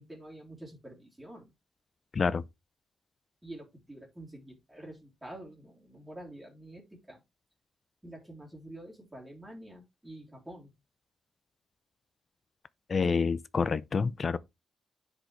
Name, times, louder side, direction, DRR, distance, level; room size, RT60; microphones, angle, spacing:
voice 1, 0.0-1.5 3.4-7.2 8.0-10.7, right 1 dB, 10° right, 3.3 m, -47 dB
voice 2, 2.1-2.4 12.9-14.4, left 5 dB, 40° left, 0.5 m, -28 dB
10.0 x 5.1 x 3.2 m
cardioid pair, 110°, 0 cm